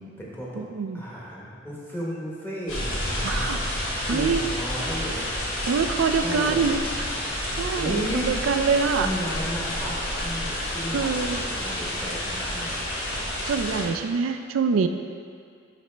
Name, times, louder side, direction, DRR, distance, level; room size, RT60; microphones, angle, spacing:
voice 1, 0.0-0.6 0.9-5.3 6.2-7.0 7.8-8.3 9.0-12.7, equal, 10° left, -5 dB, 1.2 m, -34 dB
voice 2, 0.6-1.0 3.2-3.6 4.1-4.4 5.7-6.8 7.6-9.1 10.9-11.4 13.5-14.9, right 5 dB, 85° right, 7 dB, 0.4 m, -25 dB
sound 1, 2.7-13.8, left 1 dB, 80° left, 1.7 m, -29 dB
10.0 x 4.1 x 3.3 m, 2.2 s
head